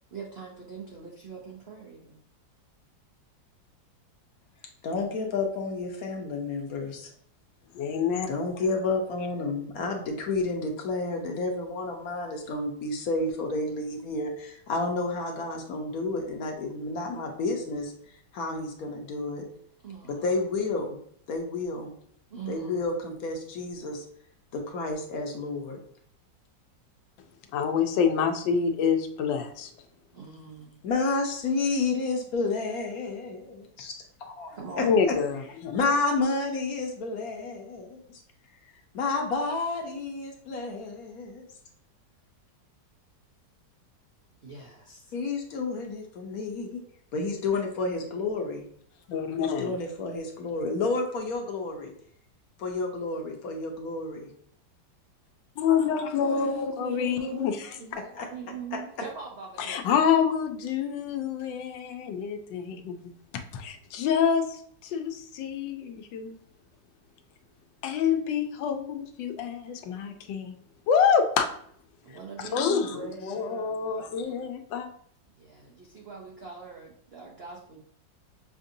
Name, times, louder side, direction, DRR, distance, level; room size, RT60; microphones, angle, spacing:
voice 1, 0.1-2.2 19.8-20.2 22.3-22.8 30.1-30.8 34.5-35.0 44.4-45.1 56.2-59.9 72.0-74.3 75.4-77.8, right 5 dB, 90° right, -2 dB, 0.5 m, -42 dB
voice 2, 4.8-7.1 8.3-17.9 18.3-19.5 20.1-21.0 21.3-21.9 22.5-24.0 24.5-25.8 30.8-33.9 34.2-35.1 35.7-38.2 38.9-41.4 45.1-46.8 47.1-48.6 49.4-51.9 52.6-54.3 58.0-58.3 58.7-58.8, left 3 dB, 60° left, 2 dB, 1.1 m, -30 dB
voice 3, 7.7-8.3 27.5-29.7 34.8-35.7 49.1-49.7 55.6-57.7 59.6-66.4 67.8-70.6 70.9-71.5 72.4-74.9, left 7 dB, 85° left, 6 dB, 1.3 m, -27 dB
5.8 x 2.6 x 2.6 m, 0.65 s
omnidirectional pair, 2.0 m